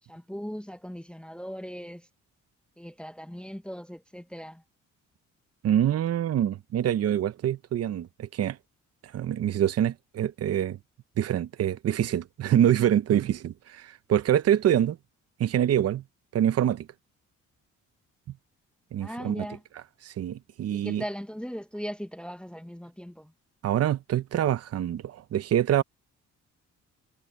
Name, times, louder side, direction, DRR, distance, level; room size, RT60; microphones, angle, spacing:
voice 1, 0.1-2.1 2.8-4.6 19.0-19.6 20.7-23.3, equal, 5° left, 0.9 m, -38 dB
voice 2, 5.6-8.6 9.1-10.8 11.2-15.0 15.4-16.0 16.3-16.9 18.9-19.5 20.0-21.0 23.6-25.8, right 10 dB, 55° right, 0.8 m, -25 dB
cardioid pair, 90°, 30 cm